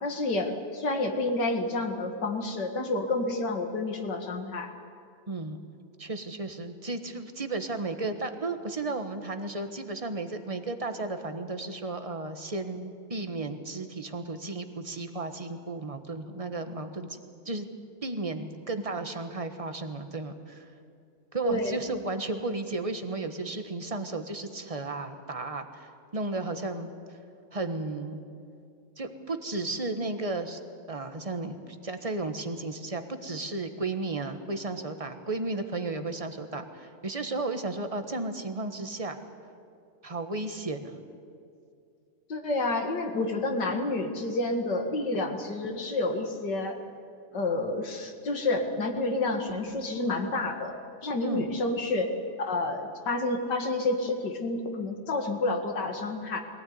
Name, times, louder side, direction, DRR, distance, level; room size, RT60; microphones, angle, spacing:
voice 1, 0.0-4.7 21.4-21.8 42.3-46.8 47.3-50.7 51.0-52.1 52.4-56.4, left 2 dB, 65° left, 4 dB, 2.5 m, -29 dB
voice 2, 5.3-5.6 6.0-17.2 17.4-17.7 18.0-20.6 21.3-26.9 27.5-28.2 29.0-30.6 30.9-31.6 31.8-39.2 40.0-41.0 51.2-51.5, right 2 dB, 20° right, 7 dB, 1.2 m, -34 dB
22.5 x 16.5 x 9.6 m, 2.4 s
omnidirectional pair, 2.0 m